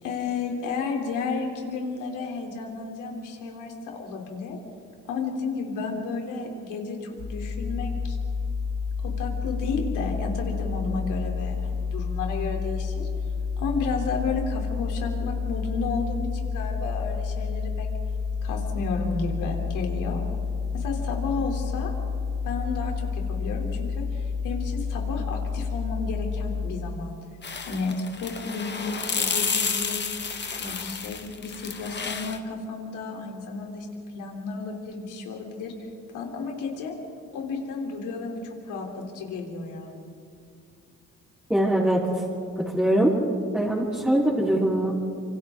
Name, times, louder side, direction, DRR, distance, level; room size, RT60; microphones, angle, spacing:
voice 1, 0.0-4.6 5.1-8.2 9.0-13.1 13.6-17.9 18.4-20.2 20.7-21.9 22.4-27.2 27.6-30.1 30.6-33.9 34.1-35.7 36.1-36.9 37.3-38.9 39.1-39.9, left 4 dB, 90° left, 1 dB, 3.5 m, -32 dB
sound 1, 7.2-26.7, left 5 dB, 65° left, 3.6 m, -30 dB
sound 2, 27.4-32.4, left 5 dB, 35° left, 1.6 m, -30 dB
voice 2, 41.5-42.2 42.6-43.1 43.5-44.9, right 1 dB, 5° right, -8 dB, 3.9 m, -22 dB
27.5 x 25.5 x 3.8 m, 2.5 s
cardioid pair, 90°, 30 cm